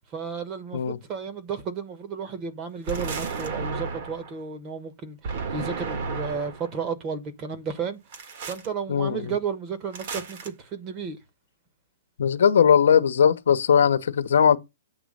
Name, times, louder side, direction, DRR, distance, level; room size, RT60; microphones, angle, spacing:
voice 1, 0.1-8.0 8.4-11.2, right 6 dB, 25° right, 1.2 m, -33 dB
sound 1, 2.9-4.3 5.2-6.7 8.1-8.7 9.9-10.5, right 5 dB, 45° right, 1.5 m, -33 dB
voice 2, 8.9-9.3 12.2-14.6, left 7 dB, 75° left, 0.9 m, -19 dB
8.9 x 3.1 x 6.4 m
hypercardioid pair, 160°, 0 cm